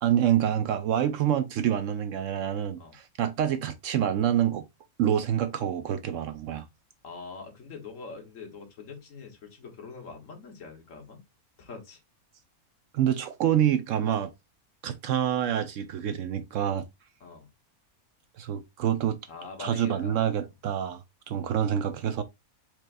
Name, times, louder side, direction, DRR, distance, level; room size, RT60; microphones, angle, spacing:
voice 1, 0.0-4.6 5.0-6.7 12.9-14.3 14.8-16.9 18.4-19.2 19.6-22.2, right 10 dB, 70° right, 0.8 m, -27 dB
voice 2, 7.0-11.2 11.6-12.0 17.2-17.5 19.3-20.5, left 4 dB, 60° left, 1.6 m, -44 dB
4.6 x 4.4 x 2.5 m
omnidirectional pair, 1.5 m